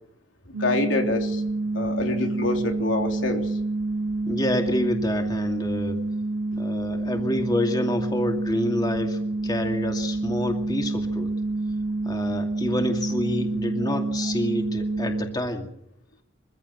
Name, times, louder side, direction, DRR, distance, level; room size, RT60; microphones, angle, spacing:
voice 1, 0.5-1.4 1.7-3.6 13.8-14.0, left 2 dB, 75° left, 3 dB, 3.3 m, -26 dB
sound 1, 0.5-15.2, right 2 dB, 75° right, 2.2 m, -28 dB
voice 2, 4.3-6.0 6.6-11.3 12.0-15.7, left 1 dB, 20° left, 3 dB, 2.4 m, -28 dB
24.0 x 15.5 x 7.8 m, 0.73 s
head